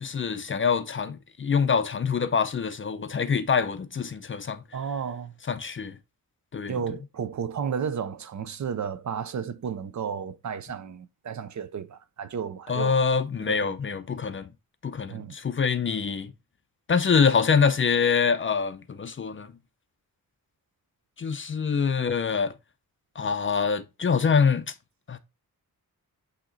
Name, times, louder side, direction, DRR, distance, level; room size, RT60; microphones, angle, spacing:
voice 1, 0.0-4.6 5.5-6.0 6.5-6.8 12.7-14.5 14.8-16.3 16.9-19.5 21.2-22.5 23.2-24.7 25.1-25.2, left 6 dB, 35° left, 0.5 m, -25 dB
voice 2, 4.7-5.3 6.7-13.0 13.5-13.7 15.1-15.3, right 7 dB, 50° right, 0.5 m, -33 dB
8.7 x 2.9 x 3.8 m
wide cardioid pair, 160°, 36 cm